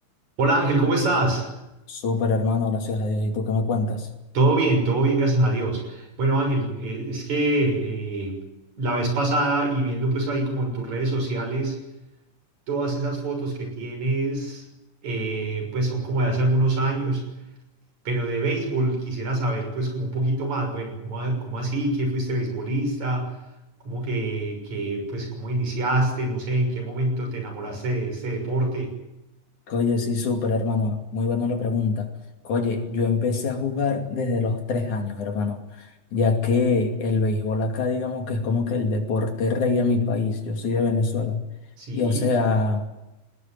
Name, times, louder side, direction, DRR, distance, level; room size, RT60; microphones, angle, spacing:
voice 1, 0.4-1.5 4.3-8.4 8.8-11.8 12.7-14.6 15.0-17.3 18.1-23.2 23.8-28.9 41.8-42.3, right 2 dB, 60° right, 4 dB, 7.8 m, -25 dB
voice 2, 1.9-4.1 29.7-32.1 32.4-41.4 41.9-42.9, left 4 dB, 65° left, 4 dB, 4.0 m, -24 dB
20.5 x 19.5 x 9.5 m, 0.97 s
omnidirectional pair, 3.8 m